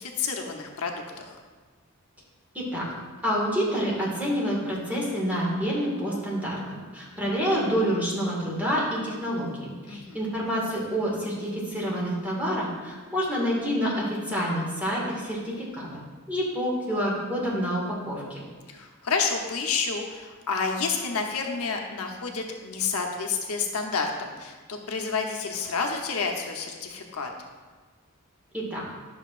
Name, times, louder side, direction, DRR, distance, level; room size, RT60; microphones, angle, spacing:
voice 1, 0.0-1.4 9.9-10.3 18.7-27.3, left 5 dB, 90° left, 2 dB, 0.9 m, -30 dB
voice 2, 2.5-2.9 3.2-15.9 16.3-18.4 28.5-28.8, equal, 10° right, -5 dB, 1.9 m, -28 dB
11.0 x 6.4 x 2.5 m, 1.4 s
head